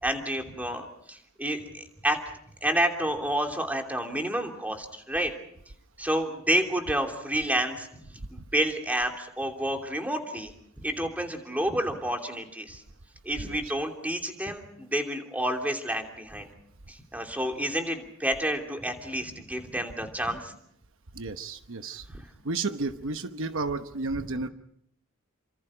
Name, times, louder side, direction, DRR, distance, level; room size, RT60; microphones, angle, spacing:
voice 1, 0.0-2.2 2.6-5.3 6.0-10.5 10.8-12.8 13.2-16.5 16.9-20.5, right 1 dB, 5° right, 3 dB, 3.0 m, -29 dB
voice 2, 13.4-13.7 21.1-22.1 22.4-24.5, right 3 dB, 65° right, 8 dB, 1.0 m, -32 dB
29.5 x 26.0 x 5.0 m, 0.70 s
head